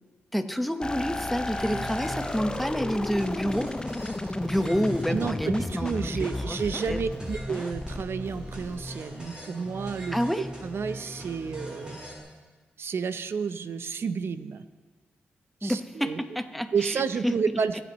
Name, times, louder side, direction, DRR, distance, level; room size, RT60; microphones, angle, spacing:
voice 1, 0.3-3.7 4.3-6.6 6.9-7.0 10.1-10.5 15.6-17.3 17.7-17.8, equal, ahead, 7 dB, 1.1 m, -28 dB
sound 1, 0.8-9.3, left 2 dB, 20° left, 0.5 m, -34 dB
sound 2, 1.5-12.2, right 1 dB, 20° right, 4.3 m, -40 dB
voice 2, 5.1-12.0 12.8-14.6 15.6-16.2 16.7-17.8, right 5 dB, 65° right, 12 dB, 0.7 m, -31 dB
22.5 x 8.1 x 3.1 m, 1.4 s
supercardioid pair, 50°, 4 cm